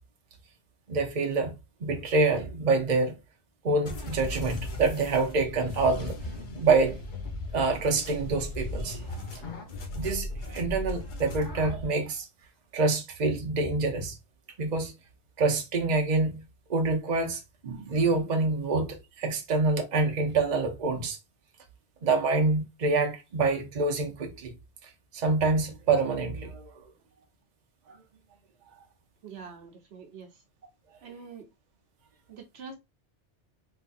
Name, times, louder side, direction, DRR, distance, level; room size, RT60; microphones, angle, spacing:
voice 1, 0.9-1.5 1.8-3.2 3.6-6.1 6.6-7.0 7.5-9.6 10.0-12.3 12.7-14.2 14.6-14.9 15.4-16.4 16.7-21.2 22.0-24.5 24.8-26.7 27.9-28.0, right 3 dB, 40° right, 0.8 m, -26 dB
sound 1, 3.9-11.9, left 1 dB, 45° left, 0.9 m, -37 dB
voice 2, 29.2-30.4 31.0-31.5 32.3-32.7, right 5 dB, 65° right, 1.0 m, -45 dB
3.7 x 3.2 x 2.4 m
omnidirectional pair, 1.2 m